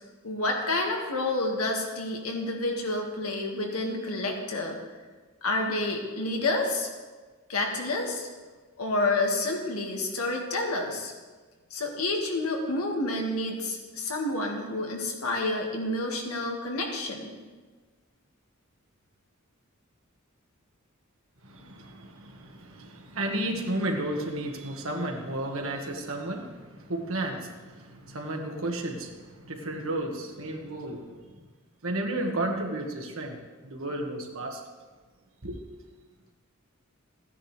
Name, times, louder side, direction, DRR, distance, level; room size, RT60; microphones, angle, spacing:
voice 1, 0.2-4.8 5.4-6.9 7.5-8.3 8.8-11.1 11.7-17.4, left 2 dB, 90° left, 1 dB, 1.8 m, -29 dB
voice 2, 21.4-31.4 31.8-33.4 33.6-34.6 35.4-35.6, right 1 dB, 65° right, 2 dB, 1.5 m, -33 dB
15.0 x 9.8 x 3.3 m, 1.4 s
head